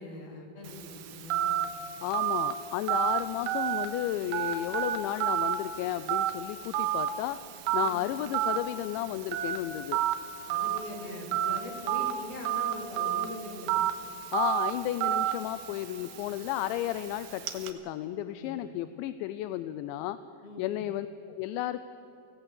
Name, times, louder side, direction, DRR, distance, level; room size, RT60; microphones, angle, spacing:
voice 1, 0.0-1.7 7.8-8.0 10.5-13.8 18.3-18.7 20.4-20.8, left 1 dB, 55° left, 1 dB, 5.0 m, -42 dB
Telephone, 0.7-17.7, right 10 dB, 70° right, 2.7 m, -32 dB
voice 2, 2.0-7.4 7.7-10.0 14.3-20.2 20.6-21.8, left 13 dB, 85° left, 12 dB, 2.9 m, -33 dB
24.0 x 17.0 x 8.1 m, 2.9 s
omnidirectional pair, 5.3 m